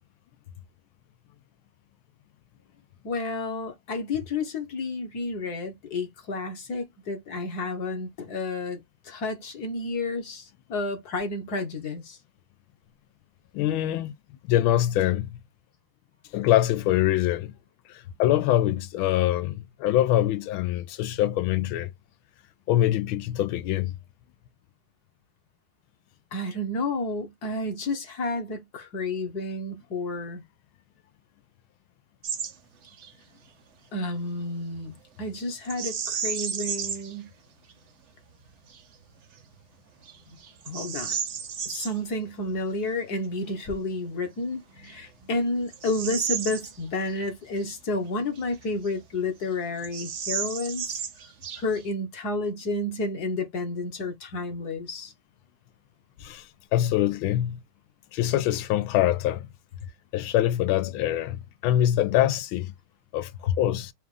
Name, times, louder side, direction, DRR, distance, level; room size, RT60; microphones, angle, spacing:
voice 1, 3.0-12.2 26.3-30.4 33.9-37.3 40.7-41.2 41.6-51.0 51.6-55.1 63.5-63.6, left 2 dB, 55° left, 1.6 m, -31 dB
voice 2, 13.5-14.1 14.5-15.4 16.3-17.5 18.2-21.9 22.7-23.9 56.2-56.4 56.7-57.6 58.1-59.5 60.1-62.7 63.1-63.9, left 13 dB, 85° left, 1.4 m, -24 dB
Bird vocalization bird call bird song, 32.2-32.5 32.8-33.1 35.6-37.1 37.7-37.8 38.4-38.8 39.4-39.5 40.0-41.9 44.0-44.1 44.8-47.2 47.6-47.7 48.4-49.2 49.4-49.5 49.8-51.9, right 7 dB, 65° right, 0.6 m, -33 dB
5.0 x 2.4 x 3.2 m
omnidirectional pair, 2.2 m